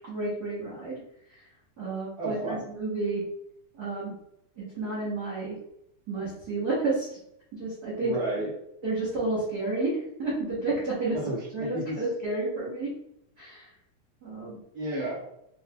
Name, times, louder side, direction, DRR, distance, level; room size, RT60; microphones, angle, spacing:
voice 1, 0.1-1.0 1.8-3.2 3.8-4.1 4.6-5.6 6.1-7.1 7.5-8.1 8.8-11.2 11.5-12.9 13.4-13.7 14.2-14.6, right 2 dB, 70° right, -8 dB, 0.9 m, -30 dB
voice 2, 2.2-2.6 8.0-8.5 11.1-12.0 14.7-15.3, right 1 dB, 35° right, -7 dB, 1.8 m, -32 dB
5.5 x 3.1 x 2.3 m, 0.76 s
omnidirectional pair, 3.7 m